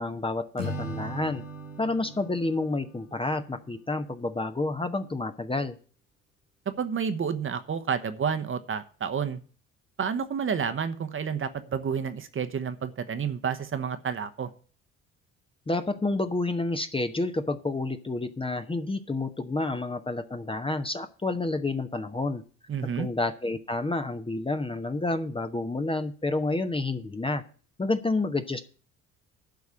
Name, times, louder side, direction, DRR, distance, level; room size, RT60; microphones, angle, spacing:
voice 1, 0.0-1.4 1.8-5.8 15.7-22.4 22.8-27.4 27.8-28.6, left 2 dB, 15° left, 8 dB, 0.9 m, -29 dB
Acoustic guitar / Strum, 0.6-3.8, right 1 dB, 90° left, 1.2 m, -39 dB
voice 2, 6.8-9.4 10.0-14.5 22.7-23.1, right 7 dB, 30° right, 9 dB, 1.1 m, -30 dB
11.5 x 4.7 x 8.3 m, 0.40 s
figure-of-eight pair, 50°, 39 cm